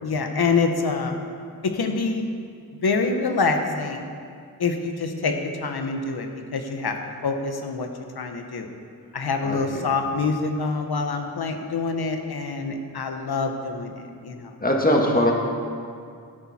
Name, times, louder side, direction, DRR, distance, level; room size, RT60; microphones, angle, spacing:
voice 1, 0.0-1.1 1.6-2.3 2.8-4.0 4.6-5.3 5.6-7.0 7.2-7.9 8.1-8.7 9.1-14.5 15.1-15.3, left 4 dB, 75° left, 5 dB, 1.2 m, -26 dB
voice 2, 9.4-9.8 14.6-15.3, left 1 dB, 20° left, -1 dB, 1.8 m, -21 dB
13.5 x 8.8 x 4.3 m, 2.3 s
wide cardioid pair, 95°, 38 cm